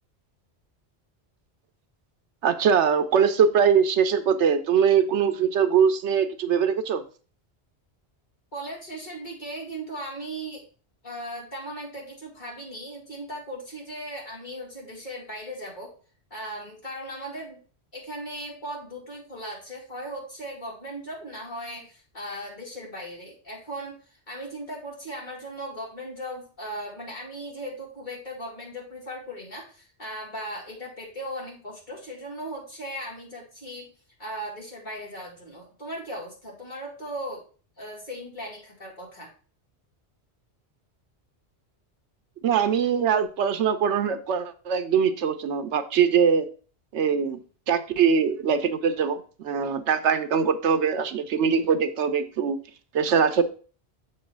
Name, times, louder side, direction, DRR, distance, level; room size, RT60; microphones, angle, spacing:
voice 1, 2.4-7.0 42.4-46.5 46.9-47.4 47.7-52.6 52.9-53.4, right 7 dB, 85° right, 10 dB, 1.0 m, -22 dB
voice 2, 8.5-10.6 11.0-15.9 16.3-17.6 17.9-33.9 34.2-37.4 37.8-39.3, right 1 dB, 45° left, -3 dB, 2.7 m, -37 dB
7.2 x 3.1 x 6.0 m, 0.39 s
omnidirectional pair, 1.1 m